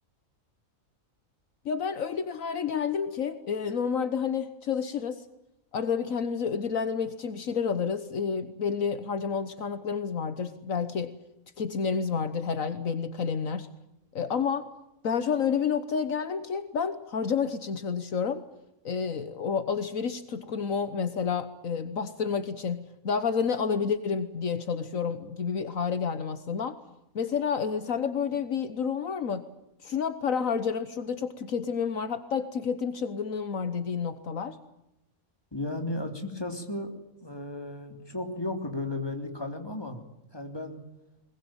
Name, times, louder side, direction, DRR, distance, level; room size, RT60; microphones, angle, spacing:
voice 1, 1.6-5.2 5.7-11.2 11.6-13.7 14.1-14.7 15.0-18.4 18.8-26.8 27.1-29.5 29.8-34.6, left 6 dB, 70° left, 11 dB, 1.5 m, -30 dB
voice 2, 35.5-36.9 37.2-40.0 40.3-40.8, left 2 dB, 15° left, 4 dB, 3.1 m, -34 dB
21.0 x 21.0 x 9.0 m, 0.88 s
omnidirectional pair, 1.5 m